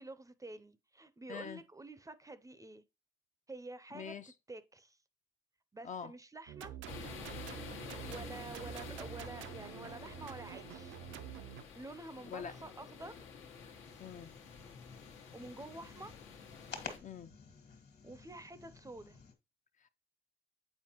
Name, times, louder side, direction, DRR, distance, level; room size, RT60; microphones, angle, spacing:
voice 1, 0.0-2.8 3.5-4.1 4.5-5.0 5.7-6.7 8.0-11.0 11.8-13.3 15.3-16.1 18.0-19.2, right 2 dB, 15° right, 0.5 m, -49 dB
voice 2, 1.3-1.6 3.9-4.3 5.8-6.1 12.3-12.5 14.0-14.3 17.0-17.3 19.8-19.9, left 7 dB, 40° left, 0.5 m, -44 dB
sound 1, 6.5-11.6, right 11 dB, 80° right, 0.5 m, -47 dB
sound 2, 6.9-17.0, left 6 dB, 85° left, 1.2 m, -50 dB
sound 3, 13.8-19.3, left 5 dB, 55° left, 1.5 m, -52 dB
7.6 x 4.4 x 2.9 m
cardioid pair, 90°, 20 cm